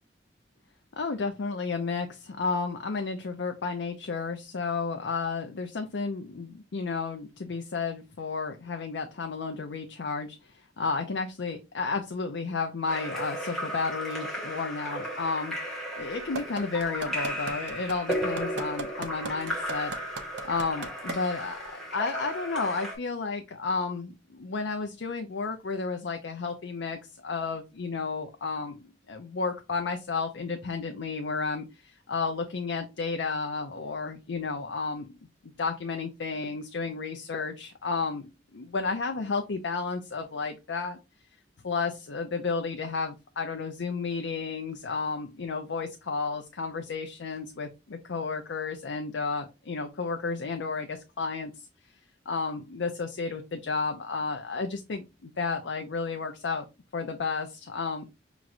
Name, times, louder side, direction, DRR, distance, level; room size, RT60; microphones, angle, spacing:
voice 1, 1.0-19.9 20.4-21.6 21.9-35.2 35.4-41.0 41.6-51.7 52.3-56.6 56.9-58.1, left 4 dB, 85° left, 5 dB, 0.5 m, -32 dB
Splash splatter / Drip / Trickle dribble, 12.9-23.0, equal, ahead, 1.7 m, -35 dB
sound 1, 16.4-21.1 21.7-21.8, right 3 dB, 80° right, 0.7 m, -35 dB
5.9 x 3.0 x 2.5 m, 0.27 s
head